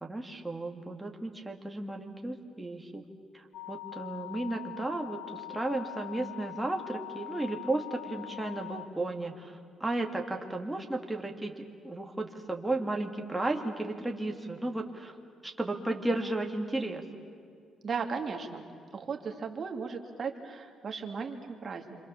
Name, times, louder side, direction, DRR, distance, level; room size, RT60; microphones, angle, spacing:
voice 1, 0.0-3.0 3.3-11.5 11.8-15.1 15.4-17.0, right 2 dB, 10° right, 2 dB, 2.5 m, -34 dB
sound 1, 3.5-8.9, left 19 dB, 85° left, 1.1 m, -43 dB
voice 2, 17.8-22.0, right 5 dB, 40° right, 3 dB, 2.6 m, -36 dB
28.5 x 26.5 x 7.2 m, 2.3 s
cardioid pair, 120°, 0 cm